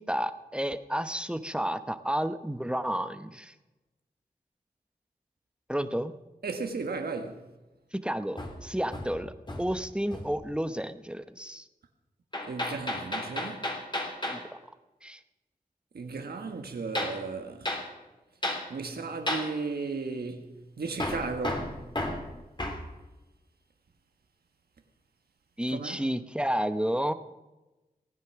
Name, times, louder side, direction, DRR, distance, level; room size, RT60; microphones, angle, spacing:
voice 1, 0.1-3.5 5.7-6.1 8.0-11.6 14.3-14.4 15.0-15.2 25.6-27.1, equal, 5° right, 1.0 m, -31 dB
voice 2, 6.4-7.4 12.4-13.6 15.9-17.7 18.7-21.8 25.7-26.0, right 4 dB, 85° right, 1.6 m, -35 dB
Hammer, 8.4-9.8 10.1-10.4 12.3-14.4 16.9-17.2 17.6-17.9 18.4-18.7 19.3-19.5 21.0-22.8, left 1 dB, 30° left, 3.0 m, -33 dB
19.0 x 9.7 x 6.0 m
cardioid pair, 55°, 16 cm